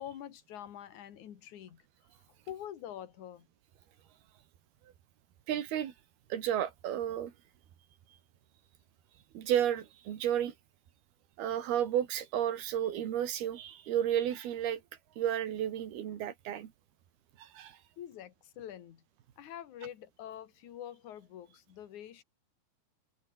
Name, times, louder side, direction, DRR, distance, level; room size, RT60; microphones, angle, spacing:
voice 1, 0.0-1.9 2.5-3.5 18.0-19.0 19.4-22.2, left 10 dB, 55° left, 3.0 m, -45 dB
voice 2, 5.5-5.9 6.3-7.3 9.3-10.5 11.4-14.8 15.2-16.7 17.4-17.8, right 10 dB, 80° right, 4.1 m, -32 dB
omnidirectional pair, 4.4 m